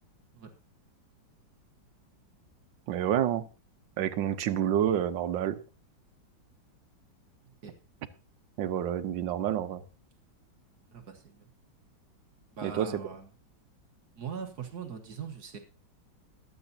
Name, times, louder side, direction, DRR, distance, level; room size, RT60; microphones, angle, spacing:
voice 1, 2.9-3.5 4.0-5.6 8.6-9.8 12.6-12.9, right 10 dB, 75° right, 11 dB, 1.5 m, -28 dB
voice 2, 10.9-11.5 12.5-13.3 14.2-15.6, right 6 dB, 55° right, 5 dB, 1.6 m, -41 dB
22.0 x 8.1 x 2.7 m, 0.33 s
omnidirectional pair, 2.1 m